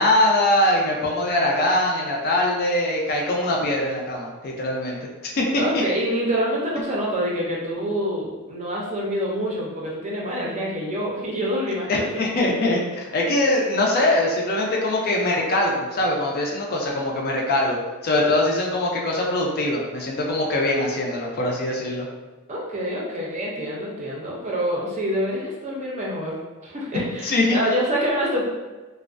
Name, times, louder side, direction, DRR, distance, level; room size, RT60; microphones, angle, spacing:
voice 1, 0.0-5.6 11.9-17.8 18.0-22.1 27.2-27.6, left 1 dB, 45° left, -1 dB, 0.4 m, -22 dB
voice 2, 5.5-12.0 22.5-26.3 26.6-28.4, equal, 35° right, -3 dB, 0.5 m, -26 dB
2.4 x 2.1 x 2.4 m, 1.2 s
head